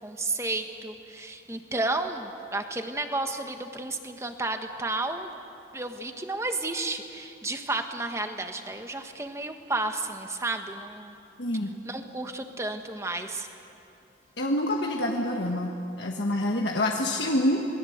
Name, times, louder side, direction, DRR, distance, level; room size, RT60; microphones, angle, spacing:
voice 1, 0.0-5.3 5.7-11.1 11.8-13.5, right 2 dB, 15° right, 6 dB, 1.3 m, -32 dB
voice 2, 11.4-11.7 14.4-17.6, left 1 dB, 70° left, 0 dB, 1.6 m, -27 dB
27.5 x 21.0 x 8.0 m, 2.8 s
head